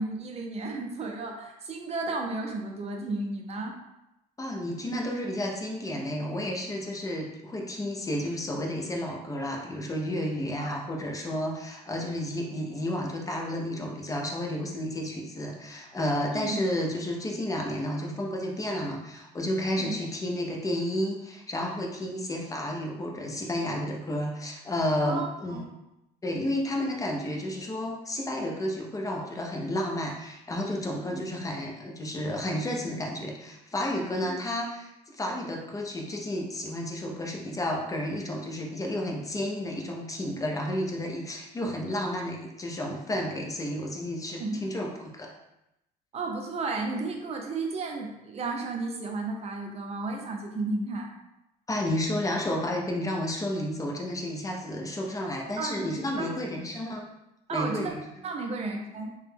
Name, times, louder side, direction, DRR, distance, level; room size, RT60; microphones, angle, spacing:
voice 1, 0.0-3.7 10.6-10.7 16.3-16.6 19.8-19.9 25.0-25.7 31.1-31.2 34.2-34.4 44.4-44.6 46.1-51.1 55.6-56.3 57.5-57.9 58.2-59.1, right 3 dB, 40° right, 2 dB, 0.6 m, -33 dB
voice 2, 4.4-25.6 26.2-45.3 51.7-57.0 57.5-58.0, left 1 dB, 20° left, 0 dB, 0.6 m, -31 dB
3.0 x 2.2 x 3.3 m, 0.89 s
cardioid pair, 110°, 17 cm